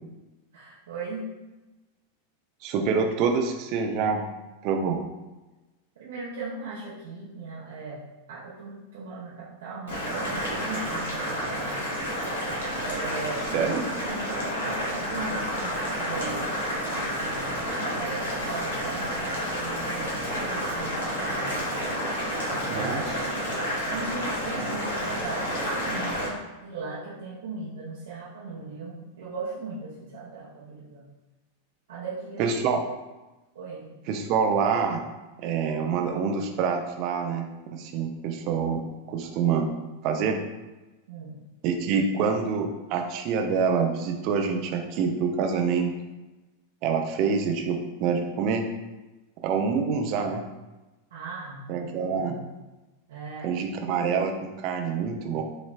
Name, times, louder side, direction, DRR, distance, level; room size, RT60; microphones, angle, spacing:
voice 1, 0.5-1.2 6.0-8.0 8.3-11.8 12.3-13.6 14.0-17.1 17.8-21.6 22.5-22.9 23.9-31.0 31.9-32.5 33.5-33.9 41.1-41.4 51.1-52.4 53.1-53.5, right 3 dB, 60° right, -8 dB, 0.9 m, -38 dB
voice 2, 2.6-4.2 4.6-5.0 13.5-13.8 22.7-23.4 32.4-32.8 34.1-35.0 35.4-37.5 37.7-38.8 39.1-39.7 40.0-40.4 41.6-45.9 46.8-48.6 49.4-50.4 51.7-52.3 53.4-55.4, right 6 dB, 40° right, 4 dB, 0.6 m, -26 dB
Boiling, 9.9-26.3, equal, 60° left, 1.5 m, -30 dB
6.3 x 3.1 x 2.5 m, 1.1 s
figure-of-eight pair, 90°, 0 cm